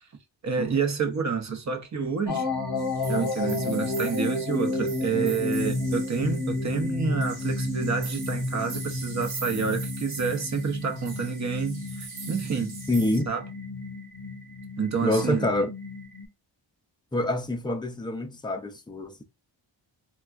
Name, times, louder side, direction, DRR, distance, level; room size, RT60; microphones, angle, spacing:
voice 1, 0.4-2.5 3.1-12.8 13.3-13.4 14.8-15.5, right 5 dB, 40° right, 0.7 m, -29 dB
sound 1, 2.3-16.3, left 2 dB, 55° left, 0.9 m, -31 dB
sound 2, 2.8-13.2, right 4 dB, 80° right, 1.1 m, -42 dB
voice 2, 12.9-13.3 15.0-15.7 17.1-19.2, left 1 dB, 10° left, 0.4 m, -26 dB
3.4 x 2.2 x 2.3 m
wide cardioid pair, 85°, 46 cm